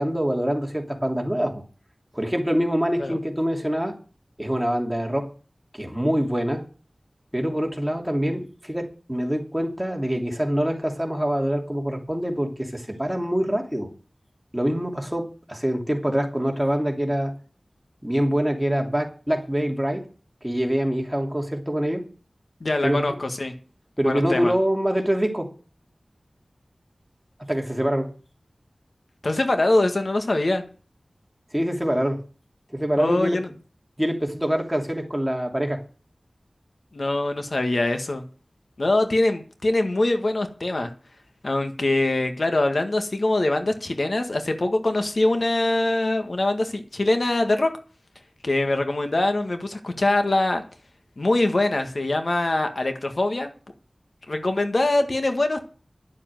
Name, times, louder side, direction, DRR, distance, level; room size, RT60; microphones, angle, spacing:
voice 1, 0.0-1.6 2.1-4.0 4.4-5.3 5.7-6.6 7.3-13.9 14.5-17.3 18.0-20.0 20.4-22.0 22.8-23.1 24.0-25.5 27.5-28.1 31.5-32.2 32.7-33.4 34.0-35.8, equal, 10° right, 2 dB, 3.0 m, -25 dB
voice 2, 22.6-23.5 24.0-24.5 29.2-30.6 33.0-33.5 36.9-38.2 38.8-40.9 41.4-47.7 48.4-50.6 51.2-53.5 54.3-55.7, left 2 dB, 65° left, 6 dB, 1.7 m, -23 dB
11.5 x 7.3 x 7.6 m, 0.38 s
wide cardioid pair, 55°, 0 cm